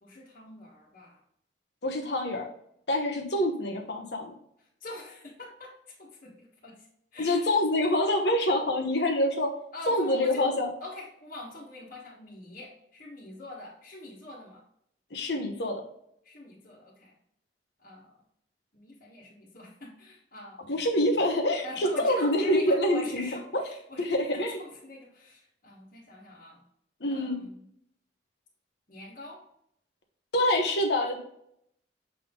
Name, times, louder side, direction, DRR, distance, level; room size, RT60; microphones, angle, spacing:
voice 1, 0.0-1.2 4.8-5.7 6.0-6.9 7.1-7.6 9.7-10.5 10.8-14.6 16.2-17.1 17.8-18.1 18.7-20.6 21.6-26.6 27.1-27.6 28.9-29.4, left 2 dB, 50° left, -8 dB, 1.5 m, -44 dB
voice 2, 1.8-2.5 2.9-4.3 7.2-9.5 9.9-10.7 15.1-15.8 20.6-23.2 24.0-24.6 27.0-27.4 30.3-31.2, left 1 dB, 65° left, 3 dB, 1.1 m, -26 dB
7.5 x 3.6 x 3.8 m, 0.73 s
head